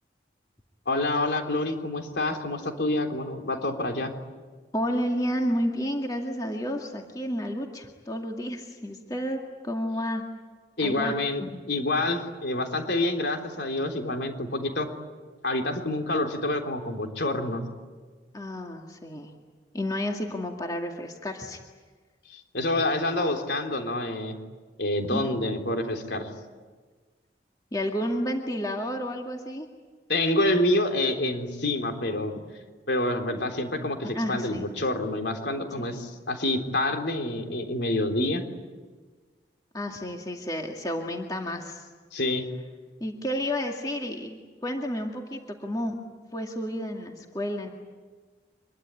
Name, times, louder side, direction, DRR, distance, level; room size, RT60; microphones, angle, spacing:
voice 1, 0.9-4.1 10.8-14.9 15.4-17.6 22.3-24.3 24.8-26.3 30.1-32.3 32.9-38.4 42.1-42.5, left 1 dB, 70° left, 4 dB, 3.6 m, -27 dB
voice 2, 4.7-10.2 10.8-11.1 11.4-11.6 18.3-19.3 19.7-21.6 25.1-25.3 27.7-29.7 34.0-34.6 35.8-35.9 39.7-41.9 43.0-46.0 46.3-47.7, equal, 20° left, 2 dB, 2.2 m, -31 dB
25.5 x 22.0 x 9.9 m, 1.4 s
head